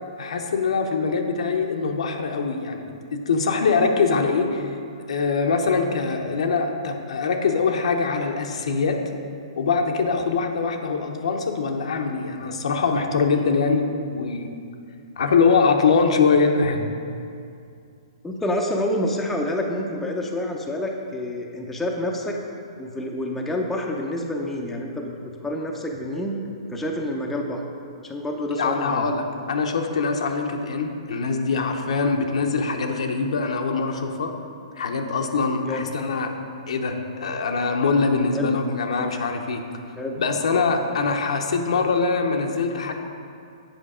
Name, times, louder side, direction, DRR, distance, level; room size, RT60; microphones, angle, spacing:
voice 1, 0.2-4.7 5.1-9.0 9.6-14.5 15.2-16.8 28.5-34.3 34.7-36.3 36.7-39.6 40.2-42.9, left 4 dB, 80° left, 4 dB, 0.8 m, -23 dB
voice 2, 18.2-22.4 22.8-26.4 26.7-27.6 28.0-29.1 35.6-35.9 38.3-38.6 40.0-40.2 40.9-41.0, left 1 dB, 5° left, 0 dB, 0.6 m, -28 dB
7.9 x 5.1 x 4.9 m, 2.4 s
hypercardioid pair, 145°, 3 cm